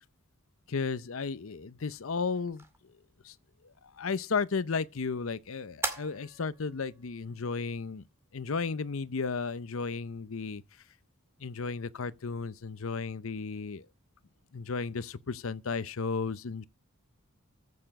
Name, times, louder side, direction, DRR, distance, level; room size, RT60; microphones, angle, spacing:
voice 1, 0.7-2.6 3.2-3.3 4.0-8.0 8.3-10.6 11.4-13.9 14.5-16.6, left 4 dB, 70° left, 0.7 m, -34 dB
sound 1, 2.3-9.3, right 2 dB, 10° right, 2.2 m, -44 dB
15.0 x 6.9 x 5.3 m
head